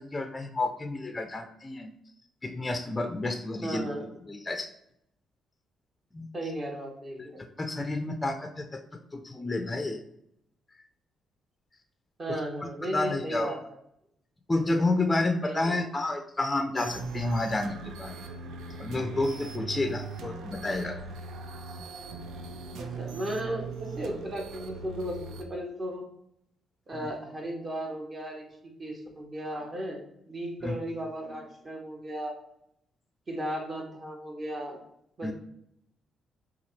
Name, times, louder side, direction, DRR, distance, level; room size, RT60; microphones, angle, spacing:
voice 1, 0.0-1.9 2.4-3.9 4.3-4.7 6.1-6.3 7.2-8.8 9.1-10.0 12.3-12.4 12.8-13.6 14.5-18.1 18.8-21.0 30.6-30.8 35.2-35.3, left 2 dB, 20° left, 6 dB, 0.5 m, -30 dB
voice 2, 3.6-4.1 6.3-7.4 12.2-13.6 15.4-15.8 22.7-26.0 26.9-28.5 28.8-30.0 30.3-32.3 33.3-34.8 35.2-35.3, right 1 dB, 35° right, 1 dB, 1.3 m, -35 dB
sound 1, 16.8-25.4, right 4 dB, 80° right, 0.5 m, -40 dB
5.6 x 2.4 x 3.2 m, 0.74 s
cardioid pair, 90°, 0 cm